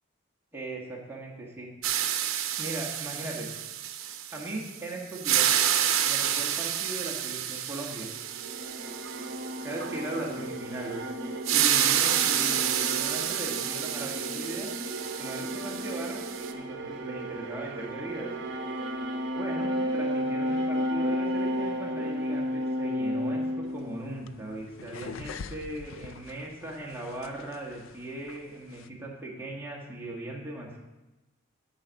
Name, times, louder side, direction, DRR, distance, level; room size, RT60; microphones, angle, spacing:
voice 1, 0.5-1.7 2.6-3.5 4.3-5.5 6.1-8.1 9.6-11.0 11.5-14.7 15.2-16.2 16.5-18.3 19.3-30.8, right 2 dB, 10° right, -3 dB, 1.6 m, -38 dB
sound 1, 1.8-4.8 5.1-9.9 11.4-16.5, right 10 dB, 85° right, 0.7 m, -29 dB
sound 2, 8.1-24.5, equal, 60° right, 1.0 m, -33 dB
sound 3, 23.7-28.9, left 6 dB, 70° left, 0.4 m, -46 dB
9.8 x 4.9 x 6.5 m, 1.1 s
head